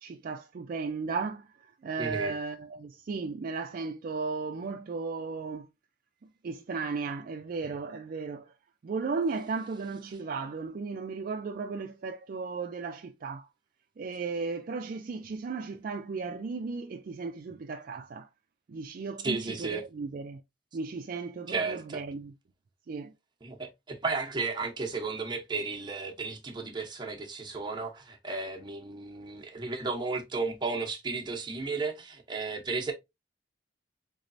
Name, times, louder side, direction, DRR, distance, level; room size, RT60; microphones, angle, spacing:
voice 1, 0.0-5.7 6.4-8.5 8.8-13.5 14.0-18.3 18.7-20.4 20.7-22.3 22.9-23.1, right 4 dB, 50° right, 0.3 m, -35 dB
voice 2, 2.0-2.4 19.2-19.9 21.5-22.0 23.4-32.9, right 3 dB, 25° right, 0.8 m, -34 dB
4.0 x 3.1 x 2.6 m
head